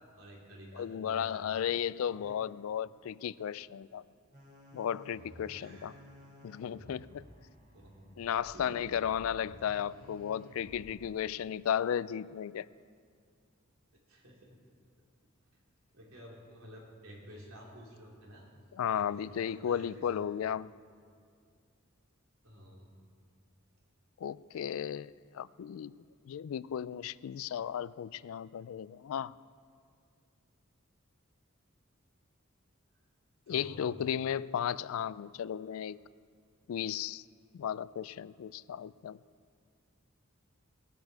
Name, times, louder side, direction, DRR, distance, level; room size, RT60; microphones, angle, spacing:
voice 1, 0.2-1.6 2.1-2.4 5.5-6.0 6.8-7.0 7.7-8.1 8.5-9.0 14.1-14.6 15.9-18.5 18.9-20.2 22.4-22.9 33.5-34.0, equal, 80° right, -2 dB, 3.2 m, -51 dB
voice 2, 0.7-4.0 4.7-5.9 6.4-7.2 8.2-12.7 18.7-20.7 24.2-25.9 26.3-29.3 33.5-36.0 36.7-37.2 37.5-39.2, left 9 dB, 80° left, 20 dB, 0.3 m, -35 dB
sound 1, 4.3-11.1, equal, 40° right, 2.8 m, -54 dB
19.0 x 10.5 x 4.7 m, 2.2 s
head